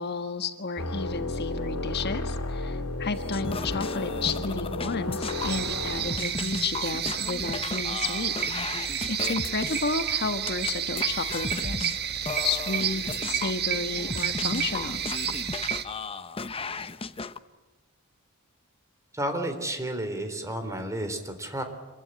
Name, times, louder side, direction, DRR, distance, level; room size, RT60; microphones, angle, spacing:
voice 1, 0.0-15.0, left 4 dB, 50° left, 8 dB, 1.4 m, -32 dB
sound 1, 0.8-6.2, left 2 dB, 85° left, 4.0 m, -32 dB
sound 2, 3.2-5.5 5.8-10.7 11.0-17.4, left 3 dB, 25° left, 0.9 m, -35 dB
sound 3, 5.2-15.8, right 9 dB, 50° right, 1.5 m, -31 dB
voice 2, 19.1-21.6, right 1 dB, 15° right, 7 dB, 3.6 m, -31 dB
26.5 x 22.5 x 9.9 m, 1.2 s
head